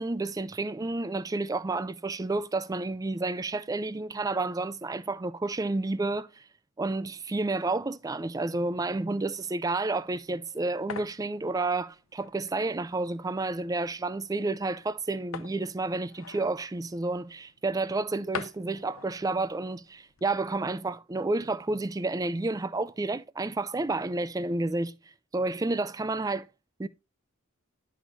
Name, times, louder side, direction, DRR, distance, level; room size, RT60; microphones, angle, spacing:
voice 1, 0.0-6.4 6.8-25.0 25.3-26.5 26.8-26.9, right 2 dB, 15° right, 0.3 m, -30 dB
sound 1, 10.0-20.4, left 6 dB, 70° left, 0.7 m, -46 dB
11.0 x 6.1 x 2.6 m
head